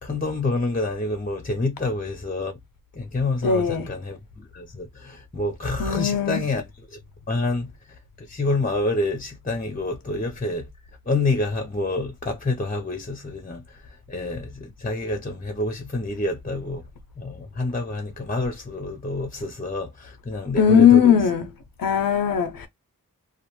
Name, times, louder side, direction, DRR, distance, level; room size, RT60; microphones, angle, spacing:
voice 1, 0.0-2.6 3.0-6.6 6.9-7.0 7.3-7.7 8.3-10.7 11.1-13.6 14.1-16.8 17.2-21.2, left 2 dB, 25° left, 0.7 m, -27 dB
voice 2, 3.4-3.9 5.8-6.4 20.6-21.5 21.8-22.7, left 8 dB, 75° left, 0.5 m, -18 dB
2.4 x 2.2 x 2.9 m
cardioid pair, 40°, 35 cm